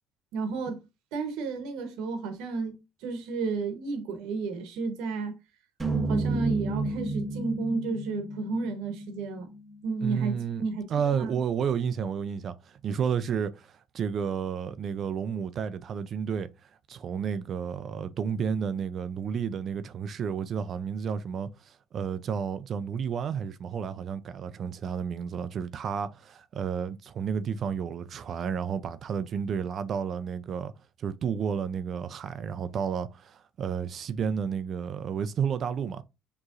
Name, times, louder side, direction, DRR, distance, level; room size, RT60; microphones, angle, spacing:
voice 1, 0.3-0.8 1.1-5.3 6.1-9.5 9.8-11.4, right 4 dB, 80° right, 0.9 m, -32 dB
sound 1, 5.8-10.1, right 2 dB, 15° right, 0.8 m, -32 dB
voice 2, 10.0-10.6 10.9-30.7 31.0-36.0, right 7 dB, 45° right, 0.4 m, -31 dB
6.2 x 3.0 x 2.5 m
cardioid pair, 125°, 0 cm